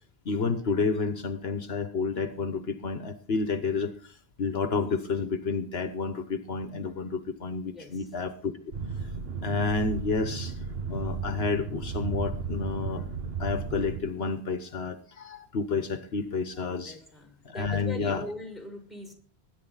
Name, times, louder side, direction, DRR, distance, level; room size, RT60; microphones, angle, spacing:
voice 1, 0.2-8.5 9.0-9.1 9.4-10.6 10.9-13.1 13.4-17.0 17.4-18.3, left 4 dB, 70° left, 1.3 m, -30 dB
voice 2, 7.7-8.1 16.7-19.2, left 1 dB, ahead, 5.4 m, -41 dB
sound 1, 8.7-14.0, right 5 dB, 65° right, 1.4 m, -34 dB
20.5 x 9.9 x 4.0 m
omnidirectional pair, 1.1 m